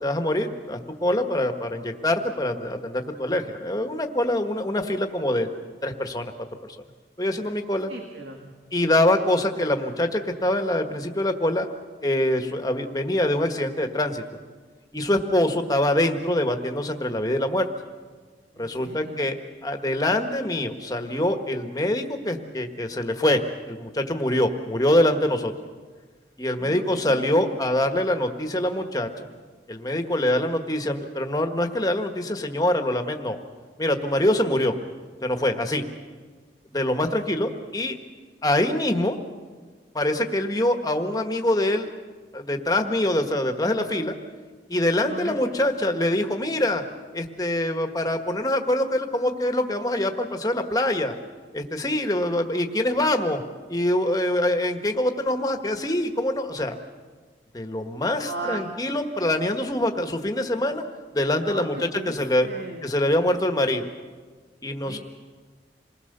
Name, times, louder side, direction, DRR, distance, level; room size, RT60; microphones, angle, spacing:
voice 1, 0.0-5.5 5.8-6.3 6.7-6.8 7.2-7.9 8.7-11.7 12.0-14.2 14.9-17.7 18.6-23.4 23.7-25.5 26.4-29.3 29.7-33.4 33.8-34.7 35.2-35.8 36.7-38.0 38.4-39.2 39.9-41.9 42.3-44.1 44.7-46.8 47.1-51.1 51.5-53.4 53.7-56.8 57.5-60.8 61.1-62.5 62.8-63.9 64.6-65.0, left 1 dB, 20° left, 5 dB, 1.5 m, -24 dB
voice 2, 7.9-8.5 18.5-19.3 26.6-27.6 45.0-45.4 58.2-58.6 61.4-61.7 61.9-62.9 64.8-65.0, right 3 dB, 75° right, 2 dB, 2.1 m, -37 dB
27.5 x 20.5 x 6.8 m, 1.5 s
head